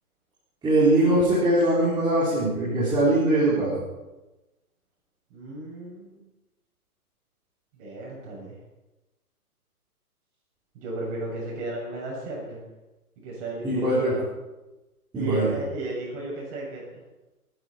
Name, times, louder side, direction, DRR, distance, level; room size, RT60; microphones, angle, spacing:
voice 1, 0.6-3.8 13.6-14.1 15.1-15.6, right 1 dB, 10° right, -10 dB, 4.0 m, -21 dB
voice 2, 5.3-6.3 7.7-8.6 10.7-12.6 13.2-14.3 15.1-16.8, right 2 dB, 30° right, -3 dB, 7.5 m, -34 dB
25.0 x 10.5 x 4.5 m, 1.0 s
figure-of-eight pair, 130°, 45 cm